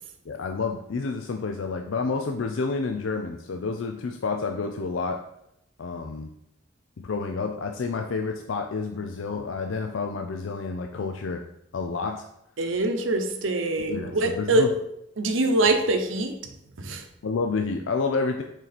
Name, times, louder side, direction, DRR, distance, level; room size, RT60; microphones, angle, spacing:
voice 1, 0.3-5.2 5.8-6.3 7.0-11.4 11.7-12.3 13.9-14.7 17.2-18.4, left 4 dB, 75° left, 4 dB, 0.5 m, -29 dB
voice 2, 12.6-14.7 15.2-16.4 16.8-17.0, right 2 dB, 80° right, 7 dB, 0.8 m, -24 dB
6.6 x 4.5 x 4.2 m, 0.79 s
head